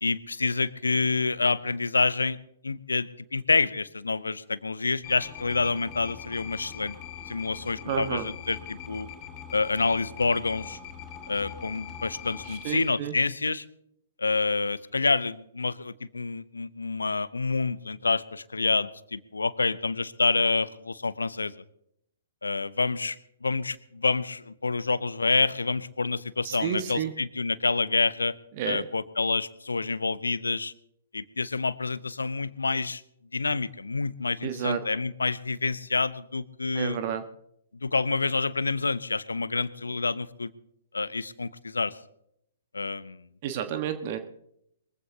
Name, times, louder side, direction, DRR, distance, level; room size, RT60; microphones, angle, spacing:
voice 1, 0.0-2.4 2.6-6.9 7.3-9.1 9.5-10.8 11.3-13.6 14.2-21.5 22.4-28.3 28.6-30.7 31.1-33.0 33.3-37.0 37.8-40.5 40.9-41.9 42.7-43.2, left 3 dB, 75° left, 17 dB, 0.8 m, -28 dB
sound 1, 5.0-12.9, left 8 dB, 30° left, 4.4 m, -42 dB
voice 2, 7.9-8.3 12.4-13.1 26.4-27.1 28.6-28.8 34.4-34.8 36.7-37.2 43.4-44.2, right 9 dB, 40° right, 8 dB, 1.3 m, -31 dB
22.5 x 15.0 x 2.8 m, 0.73 s
figure-of-eight pair, 120°, 0 cm